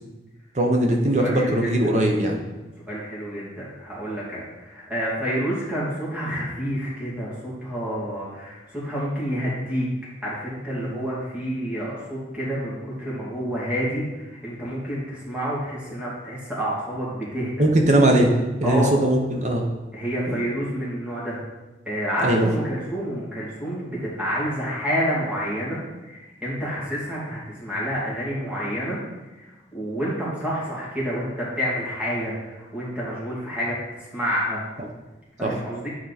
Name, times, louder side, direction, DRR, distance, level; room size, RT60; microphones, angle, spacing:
voice 1, 0.5-2.4 10.8-10.9 17.6-18.3 18.6-19.6 20.3-20.4 22.2-22.5 35.4-35.5, right 1 dB, 40° right, 1 dB, 0.8 m, -20 dB
voice 2, 1.2-1.9 2.9-9.8 10.2-17.6 18.6-18.9 19.9-21.4 21.8-29.0 29.4-34.6 35.4-35.9, equal, 5° right, -7 dB, 2.3 m, -29 dB
8.9 x 4.6 x 4.1 m, 1.1 s
head